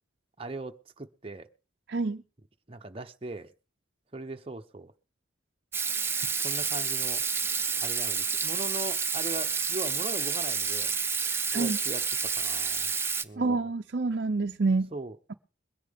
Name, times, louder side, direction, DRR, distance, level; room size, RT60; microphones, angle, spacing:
voice 1, 0.4-1.5 2.7-3.5 4.1-4.9 6.4-7.2 7.8-10.9 11.5-12.9 13.2-13.7 14.9-15.3, right 2 dB, 30° right, 0.9 m, -40 dB
voice 2, 1.9-2.2 11.5-11.8 13.4-14.9, right 3 dB, 60° right, 0.6 m, -27 dB
Water tap faucet / Sink (filling or washing), 5.7-13.2, right 5 dB, 15° right, 0.6 m, -29 dB
22.0 x 10.0 x 3.6 m
head